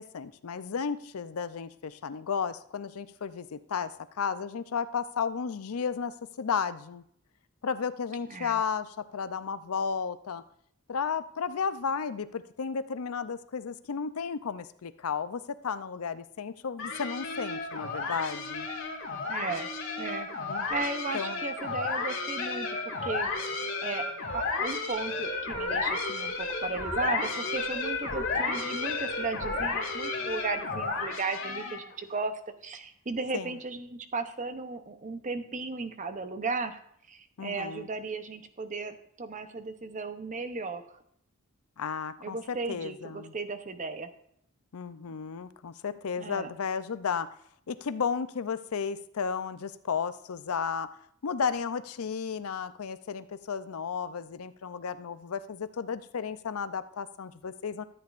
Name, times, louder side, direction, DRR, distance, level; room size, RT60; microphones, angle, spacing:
voice 1, 0.0-7.0 7.6-10.4 10.9-18.7 20.5-20.7 21.1-21.4 33.3-33.6 37.4-37.9 41.8-43.3 44.7-47.3 47.7-50.9 51.2-57.8, left 6 dB, 90° left, 13 dB, 0.5 m, -33 dB
voice 2, 8.3-8.6 19.3-19.7 20.0-20.3 20.7-23.3 23.8-24.0 24.3-36.8 37.1-40.8 42.2-44.1 46.2-46.5, right 3 dB, 35° right, 9 dB, 0.7 m, -35 dB
sound 1, 16.8-31.9, left 3 dB, 65° left, 2.1 m, -32 dB
13.5 x 8.6 x 2.5 m, 0.68 s
head